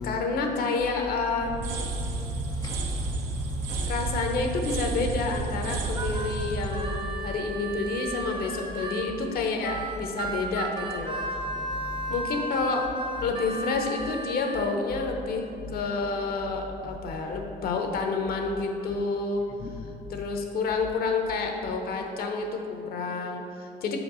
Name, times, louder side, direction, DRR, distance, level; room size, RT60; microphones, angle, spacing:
voice 1, 0.0-1.6 3.9-11.2 12.1-12.9 13.2-19.4 20.1-24.0, left 4 dB, 60° left, 0.9 m, -29 dB
sound 1, 1.4-8.3, right 3 dB, 80° right, 0.8 m, -32 dB
voice 2, 1.8-4.0 6.2-7.4 10.0-10.1 11.4-12.2 13.2-13.3 15.1-15.3 15.6-15.8 16.5-17.0 17.4-17.5 19.6-20.2, left 3 dB, 25° left, 0.4 m, -39 dB
Harmonica, 5.6-9.1 9.6-14.7, right 2 dB, 25° right, 0.7 m, -35 dB
5.1 x 4.7 x 6.2 m
cardioid pair, 110°, 17 cm